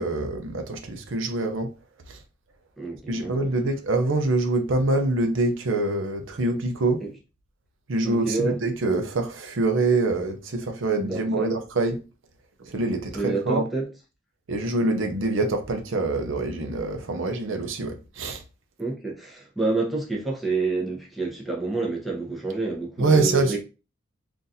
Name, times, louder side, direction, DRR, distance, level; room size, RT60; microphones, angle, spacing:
voice 1, 0.0-1.7 2.1-2.2 3.1-7.0 7.9-12.0 12.6-13.6 14.5-18.4 23.0-23.6, right 2 dB, 70° right, 0.6 m, -25 dB
voice 2, 2.8-3.4 7.0-7.1 8.0-8.6 11.0-11.6 13.1-13.9 18.8-23.6, right 3 dB, ahead, 0.8 m, -28 dB
3.9 x 2.5 x 2.7 m
head